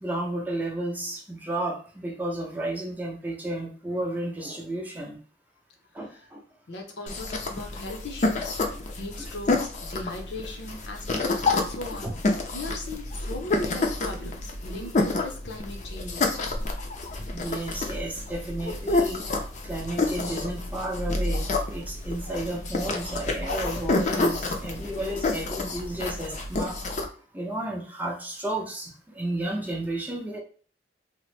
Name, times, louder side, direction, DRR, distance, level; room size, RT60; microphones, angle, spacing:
voice 1, 0.0-5.2 5.9-6.4 9.5-9.7 12.0-12.1 17.3-19.2 19.6-26.8 27.3-30.4, right 1 dB, 10° right, -1 dB, 0.5 m, -32 dB
voice 2, 6.7-8.6 8.9-12.1 12.5-16.3, left 2 dB, 80° left, 3 dB, 0.7 m, -38 dB
sound 1, 7.1-27.0, left 2 dB, 45° left, 0.4 m, -29 dB
2.9 x 2.0 x 3.2 m, 0.42 s
head